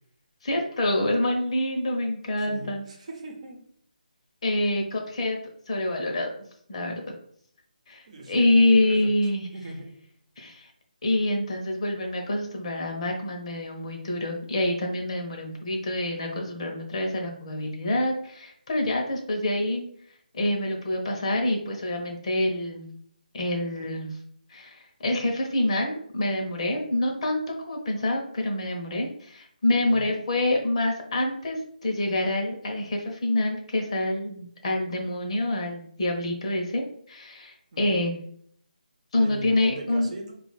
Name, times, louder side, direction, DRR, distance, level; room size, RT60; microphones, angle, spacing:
voice 1, 0.4-2.8 4.4-5.4 5.7-6.3 6.7-7.0 7.9-9.5 10.4-10.7 11.0-19.8 20.3-22.9 23.3-24.2 24.5-27.4 27.7-38.1 39.1-40.1, left 1 dB, 40° left, 2 dB, 0.9 m, -26 dB
voice 2, 2.5-3.6 8.1-8.5 8.8-9.1 9.5-9.9 29.9-30.1 37.7-38.0 39.1-40.3, right 1 dB, 45° right, 2 dB, 0.9 m, -40 dB
4.3 x 2.5 x 4.1 m, 0.63 s
figure-of-eight pair, 160°, 5 cm